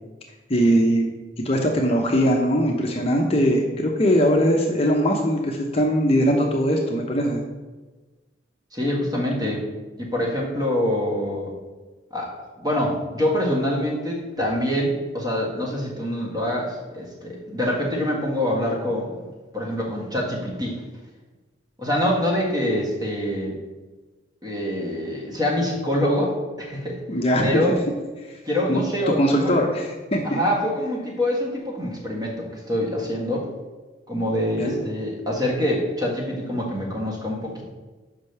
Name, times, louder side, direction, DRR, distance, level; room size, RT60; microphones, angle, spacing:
voice 1, 0.5-1.1 1.4-7.4 27.1-27.5 28.7-28.8 29.2-30.4 34.6-34.7, equal, 30° left, 0 dB, 0.7 m, -20 dB
voice 2, 8.7-9.6 10.0-11.5 12.1-19.1 19.5-20.8 21.8-23.6 24.4-27.0 27.4-27.8 28.4-29.5 30.2-33.5 34.1-37.6, left 1 dB, 20° right, -2 dB, 1.6 m, -25 dB
5.5 x 5.1 x 6.6 m, 1.3 s
head